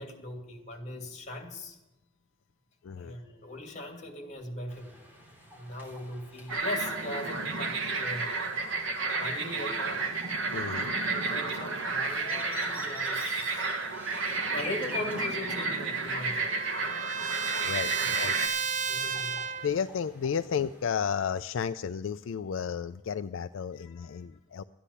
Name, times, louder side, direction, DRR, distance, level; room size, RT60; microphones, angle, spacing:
voice 1, 0.0-1.8 3.0-4.9 5.5-8.3 9.2-10.0 11.1-13.7 14.4-16.6 18.0-18.1 18.9-19.4 23.8-24.2, left 1 dB, 40° left, 3 dB, 2.5 m, -40 dB
voice 2, 2.8-3.2 10.5-10.9 17.6-18.4 19.6-24.6, left 7 dB, 75° left, 10 dB, 0.4 m, -32 dB
sound 1, 4.7-20.9, left 2 dB, 10° right, 3.4 m, -46 dB
sound 2, 6.5-18.5, right 3 dB, 70° right, 1.6 m, -32 dB
Trumpet, 15.4-19.8, right 6 dB, 40° right, 0.7 m, -33 dB
13.5 x 10.0 x 6.9 m, 1.0 s
head